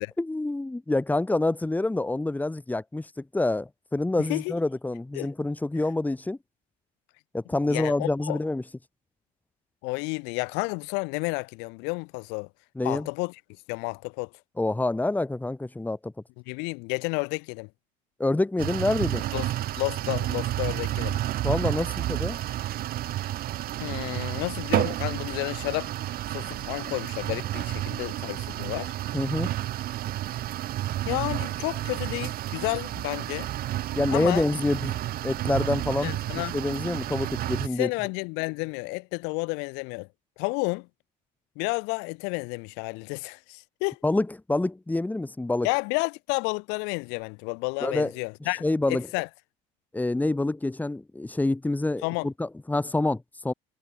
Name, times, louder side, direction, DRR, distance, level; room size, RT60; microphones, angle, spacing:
voice 1, 0.2-6.4 7.3-8.6 12.8-13.1 14.6-16.1 18.2-19.2 21.4-22.4 29.1-29.5 33.9-35.0 35.2-36.1 36.5-37.9 44.0-45.7 47.8-48.1 48.6-49.1 49.9-53.5, left 2 dB, 10° left, 2.8 m, -27 dB
voice 2, 4.2-4.5 5.1-5.3 7.7-8.4 9.8-12.5 12.8-13.4 13.7-14.3 16.5-17.7 19.3-19.5 19.8-21.2 23.8-25.9 26.3-28.9 31.1-33.5 34.1-34.5 36.0-36.6 37.8-40.1 40.4-40.9 41.6-44.0 45.6-49.3 52.0-52.3, left 32 dB, 80° left, 4.5 m, -31 dB
sound 1, 18.6-37.7, right 14 dB, 60° right, 3.1 m, -31 dB
supercardioid pair, 105°, 18 cm